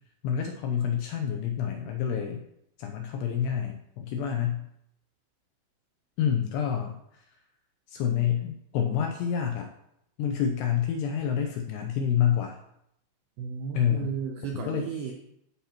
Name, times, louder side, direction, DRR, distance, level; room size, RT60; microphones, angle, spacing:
voice 1, 0.2-2.4 2.8-4.7 6.2-7.2 7.9-9.7 10.2-12.6 13.7-14.1 14.5-14.9, left 8 dB, 85° left, 2 dB, 2.5 m, -28 dB
voice 2, 13.4-15.1, right 7 dB, 85° right, 1 dB, 2.2 m, -34 dB
14.0 x 5.6 x 3.0 m, 0.77 s
omnidirectional pair, 5.4 m